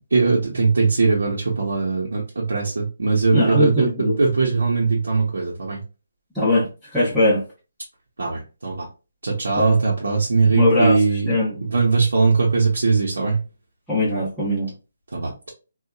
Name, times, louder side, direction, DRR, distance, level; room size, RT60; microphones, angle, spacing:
voice 1, 0.1-5.8 8.2-8.9 9.2-11.3 11.6-13.4 15.1-15.5, right 4 dB, 80° right, -3 dB, 0.8 m, -20 dB
voice 2, 3.3-4.1 6.3-7.4 9.6-9.8 10.5-11.0 11.3-11.6 13.9-14.7, left 1 dB, ahead, -13 dB, 0.7 m, -20 dB
2.7 x 2.2 x 2.3 m, 0.31 s
hypercardioid pair, 165°, 0 cm